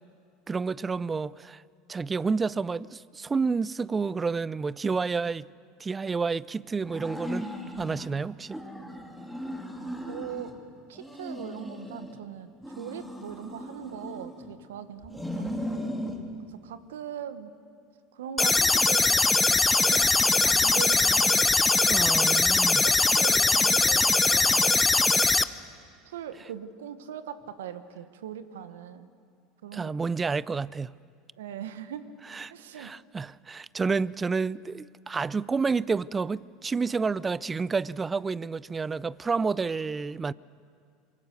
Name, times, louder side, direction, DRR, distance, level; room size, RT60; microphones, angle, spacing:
voice 1, 0.5-1.6 1.9-5.5 5.8-7.5 7.8-8.6 21.9-22.9 29.7-30.9 32.3-40.3, right 4 dB, 20° right, 0.5 m, -29 dB
sound 1, 6.8-8.1 8.5-10.6 10.9-12.2 12.6-14.5 15.0-16.2, equal, 5° right, 3.4 m, -37 dB
voice 2, 10.0-10.5 10.9-15.4 16.4-17.5 18.1-21.5 22.2-22.4 22.8-24.8 26.0-29.1 29.6-30.1 31.4-32.0 32.5-32.9, right 9 dB, 80° right, 1.3 m, -40 dB
sound 2, 18.4-25.4, left 3 dB, 15° left, 0.9 m, -21 dB
24.5 x 23.5 x 6.8 m
hypercardioid pair, 85°, 0 cm